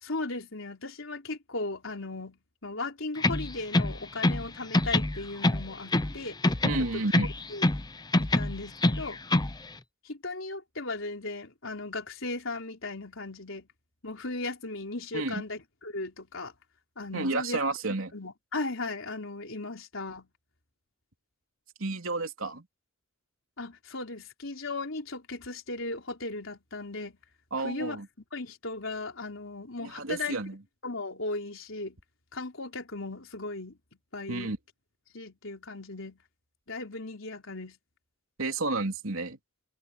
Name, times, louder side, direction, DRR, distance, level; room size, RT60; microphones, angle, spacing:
voice 1, 0.0-6.4 6.8-7.0 7.5-7.6 8.2-9.2 10.0-13.7 14.0-16.5 17.0-17.6 18.1-20.3 23.6-27.2 27.6-28.0 28.3-30.4 30.8-32.0 32.3-33.8 34.1-34.5 35.1-36.2 36.7-37.8, left 2 dB, 70° left, 4.1 m, -37 dB
sound 1, 3.2-4.5 4.7-6.2 6.4-7.9 8.1-9.6, left 2 dB, 20° left, 0.7 m, -25 dB
voice 2, 6.6-7.3 15.1-15.4 17.1-18.1 21.8-22.6 27.5-28.1 29.8-30.6 34.3-34.6 38.4-39.4, right 2 dB, 75° right, 3.3 m, -31 dB
head